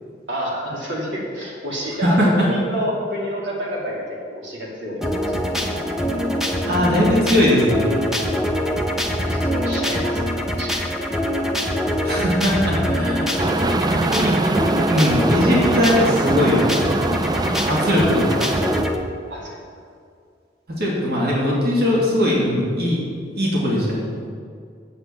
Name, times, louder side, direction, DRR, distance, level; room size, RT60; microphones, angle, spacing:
voice 1, 0.3-4.0 4.3-5.0 9.2-10.3 10.6-10.9 13.2-13.4 19.3-19.6, equal, 85° right, -4 dB, 2.9 m, -28 dB
voice 2, 2.0-2.5 6.7-8.0 12.0-13.4 13.8-14.3 14.9-16.6 17.7-18.3 20.8-23.0 23.4-24.1, left 1 dB, 60° right, -4 dB, 2.5 m, -20 dB
sound 1, 5.0-19.0, equal, 5° right, 0.9 m, -24 dB
sound 2, 13.4-18.8, right 2 dB, 25° right, 0.4 m, -23 dB
8.1 x 7.8 x 7.1 m, 2.2 s
head